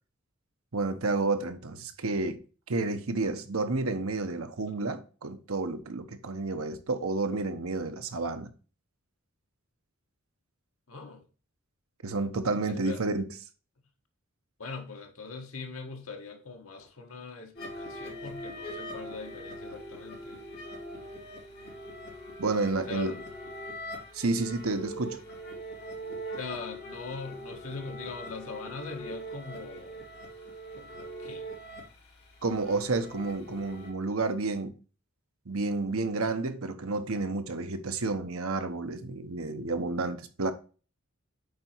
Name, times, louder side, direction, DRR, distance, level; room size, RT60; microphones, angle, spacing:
voice 1, 0.7-2.4 2.7-8.5 12.0-13.3 22.4-23.2 24.1-25.2 32.4-34.7 35.5-40.5, right 3 dB, 80° right, 1.0 m, -30 dB
voice 2, 10.9-11.2 12.7-13.0 14.6-20.4 22.9-23.2 26.4-30.0 30.7-31.5, left 3 dB, 80° left, 1.6 m, -41 dB
sound 1, 17.5-33.9, equal, 50° left, 2.9 m, -42 dB
8.5 x 4.1 x 4.5 m
head